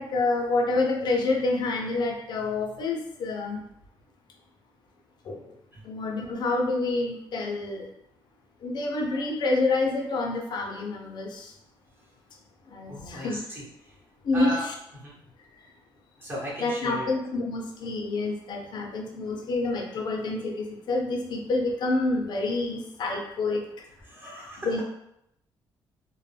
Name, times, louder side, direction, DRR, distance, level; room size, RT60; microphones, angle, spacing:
voice 1, 0.0-3.6 5.3-5.4 5.9-7.9 8.6-11.5 12.7-13.4 14.3-14.7 16.6-23.6 24.6-24.8, left 3 dB, 60° left, 1 dB, 0.5 m, -28 dB
voice 2, 12.9-13.9 14.3-14.6 14.9-15.1 16.2-17.2 24.1-24.7, equal, 25° right, -5 dB, 0.9 m, -37 dB
2.1 x 2.1 x 3.2 m, 0.79 s
cardioid pair, 105°, 9 cm